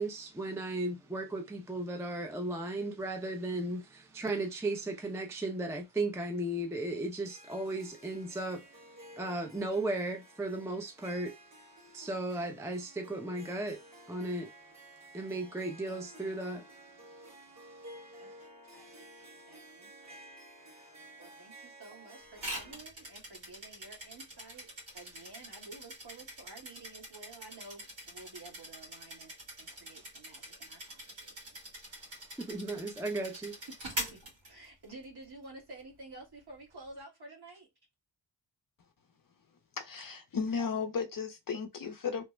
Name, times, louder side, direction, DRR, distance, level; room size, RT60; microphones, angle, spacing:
voice 1, 0.0-8.8 9.2-13.8 14.1-14.5 15.1-18.1 18.7-19.0 31.9-33.7, right 2 dB, 5° right, 0.4 m, -36 dB
Harp, 7.2-22.7, right 1 dB, 35° right, 1.2 m, -53 dB
voice 2, 18.2-20.3 20.7-31.6 33.7-37.7, right 2 dB, 55° right, 1.5 m, -52 dB
sound 1, 22.4-35.0, right 1 dB, 75° right, 1.6 m, -44 dB
voice 3, 39.8-42.2, left 5 dB, 45° left, 0.5 m, -34 dB
3.2 x 2.1 x 3.0 m
wide cardioid pair, 110°, 46 cm